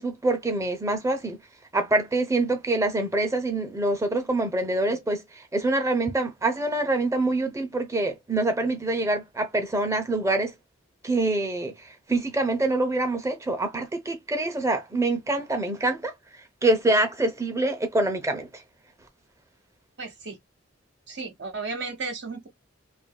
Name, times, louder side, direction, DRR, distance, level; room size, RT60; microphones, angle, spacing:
voice 1, 0.0-1.4 1.7-10.5 11.0-11.7 12.1-16.1 16.6-18.5, right 2 dB, 15° right, 0.6 m, -25 dB
voice 2, 20.0-20.4 21.1-22.5, right 4 dB, 60° right, 0.9 m, -34 dB
2.8 x 2.6 x 2.2 m
head